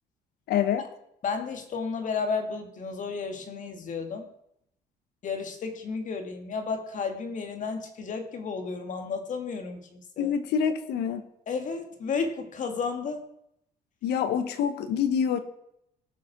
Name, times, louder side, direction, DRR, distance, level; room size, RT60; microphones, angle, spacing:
voice 1, 0.5-0.8 10.2-11.2 14.0-15.4, left 8 dB, 80° left, 10 dB, 1.3 m, -26 dB
voice 2, 1.2-4.3 5.2-10.3 11.5-13.2, left 5 dB, 50° left, 6 dB, 2.2 m, -32 dB
17.0 x 6.3 x 6.2 m, 0.77 s
cardioid pair, 110°, 17 cm